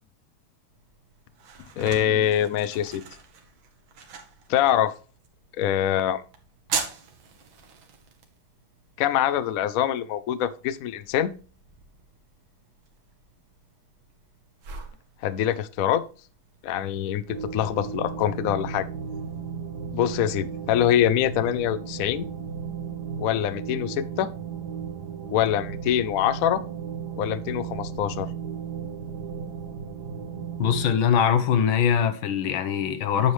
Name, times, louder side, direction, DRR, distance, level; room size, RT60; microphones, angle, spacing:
sound 1, 0.7-18.3, right 6 dB, 80° right, 2.1 m, -42 dB
voice 1, 1.8-3.0 4.5-4.9 5.6-6.2 9.0-11.3 15.2-16.0 16.6-18.9 19.9-22.3 23.2-24.3 25.3-26.6 27.2-28.3, left 10 dB, 75° left, 0.8 m, -24 dB
sound 2, 17.3-30.9, right 6 dB, 60° right, 1.6 m, -35 dB
voice 2, 30.6-33.3, left 8 dB, 90° left, 1.7 m, -22 dB
9.4 x 7.1 x 3.1 m
omnidirectional pair, 2.2 m